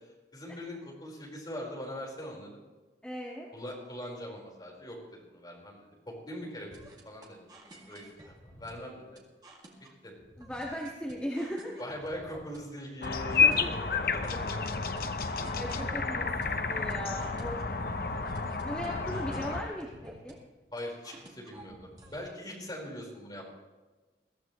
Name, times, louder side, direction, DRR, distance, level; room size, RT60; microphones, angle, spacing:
voice 1, 0.3-2.6 3.5-7.5 7.9-9.2 10.0-10.1 11.8-13.6 14.1-14.6 20.7-23.4, left 1 dB, 25° left, -2 dB, 4.7 m, -41 dB
voice 2, 3.0-3.5 10.4-11.7 13.3-13.9 15.4-16.3 16.6-17.6 18.6-20.4, equal, 5° left, -4 dB, 1.8 m, -38 dB
sound 1, 6.7-22.2, right 1 dB, 25° right, 2.3 m, -53 dB
sound 2, 13.0-19.6, left 4 dB, 55° left, 0.8 m, -30 dB
22.5 x 15.0 x 3.2 m, 1.2 s
head